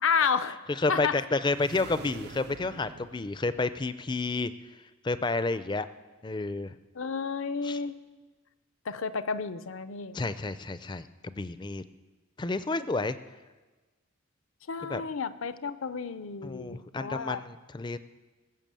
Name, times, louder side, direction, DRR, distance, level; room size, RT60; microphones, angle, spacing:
voice 1, 0.0-0.6 0.9-1.2 6.9-8.0 8.9-10.2 14.7-17.4, left 5 dB, 75° left, 14 dB, 0.6 m, -31 dB
voice 2, 0.7-4.5 5.0-5.9 6.2-6.8 7.6-7.8 10.1-11.8 12.4-13.2 14.8-15.0 16.4-18.0, left 3 dB, 20° left, 13 dB, 0.4 m, -30 dB
sound 1, 1.5-4.1, right 4 dB, 50° right, 0.4 m, -46 dB
19.5 x 7.1 x 7.5 m, 1.3 s
head